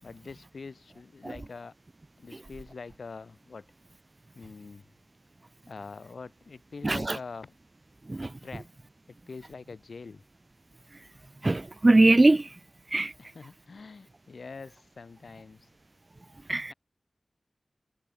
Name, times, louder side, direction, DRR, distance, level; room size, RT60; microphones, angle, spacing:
voice 1, 0.0-1.7 2.2-3.6 4.3-4.8 5.7-7.5 8.4-8.7 9.3-10.2 13.2-15.7, left 4 dB, 85° left, 4.9 m, -44 dB
voice 2, 6.8-7.2 8.1-8.3 11.4-12.5 12.9-13.1 16.5-16.7, right 2 dB, 35° right, 0.8 m, -21 dB
wide cardioid pair, 90°, 0 cm